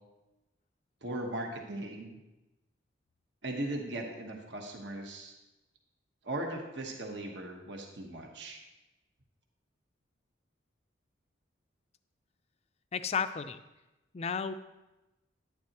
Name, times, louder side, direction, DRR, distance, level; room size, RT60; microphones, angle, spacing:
voice 1, 1.0-2.2 3.4-5.4 6.2-8.6, right 1 dB, 65° right, 2 dB, 1.2 m, -38 dB
voice 2, 12.9-13.6 14.1-14.5, left 6 dB, 35° left, 11 dB, 0.4 m, -32 dB
10.5 x 10.0 x 3.0 m, 1.0 s
head